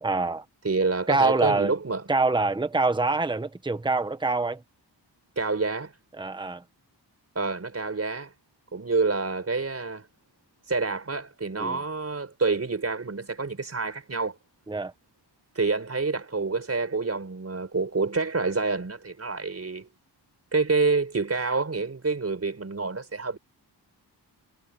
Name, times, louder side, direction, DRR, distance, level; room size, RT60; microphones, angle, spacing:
voice 1, 0.0-0.4 1.1-1.7 2.1-4.6 6.2-6.6 11.6-11.8 14.7-14.9, right 3 dB, 10° right, 1.1 m, -25 dB
voice 2, 0.6-2.0 5.4-6.0 7.4-8.3 8.7-10.1 10.6-14.4 15.5-19.9 20.5-23.4, right 4 dB, 35° right, 5.5 m, -27 dB
wide cardioid pair, 130°, 43 cm